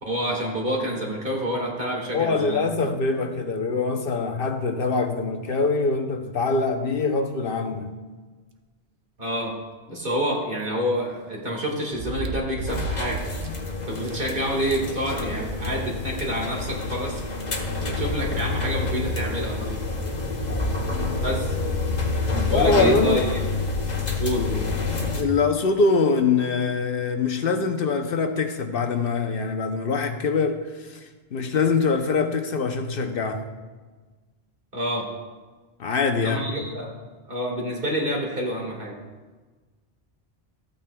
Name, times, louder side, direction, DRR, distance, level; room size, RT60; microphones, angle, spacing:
voice 1, 0.0-2.9 9.2-9.6 9.9-13.3 13.9-17.2 17.8-19.8 21.2-21.6 22.5-23.5 24.2-24.7 34.7-35.1 36.2-38.9, equal, 55° right, 1.9 m, -28 dB
voice 2, 2.1-7.9 22.5-23.3 25.2-31.0 31.3-33.4 35.8-36.4, left 4 dB, 65° left, 0.8 m, -23 dB
sound 1, 10.0-10.1 11.9-13.6 14.0-14.1 14.6-14.7 15.1-16.2 17.2-17.3 18.7-18.8 19.4-19.5 20.2-20.4 21.7-21.8 22.0-22.1 23.8-24.2 24.9-25.0, right 4 dB, 75° right, 0.9 m, -34 dB
sound 2, 12.7-25.2, left 3 dB, 45° left, 1.1 m, -28 dB
14.5 x 8.7 x 2.2 m
omnidirectional pair, 1.1 m